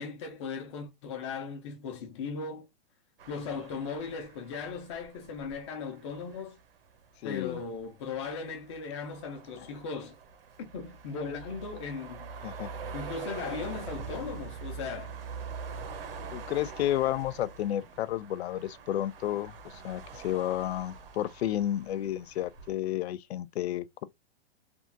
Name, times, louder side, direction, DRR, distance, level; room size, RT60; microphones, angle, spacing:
voice 1, 0.0-2.7 3.3-6.6 7.2-10.2 10.6-12.3 12.9-15.1, left 5 dB, 30° left, 0.8 m, -38 dB
sound 1, 3.2-22.7, right 5 dB, 65° right, 0.9 m, -44 dB
voice 2, 7.2-7.6 12.4-12.7 16.3-24.0, left 12 dB, 90° left, 0.5 m, -31 dB
3.4 x 2.5 x 2.5 m
supercardioid pair, 175°, 31 cm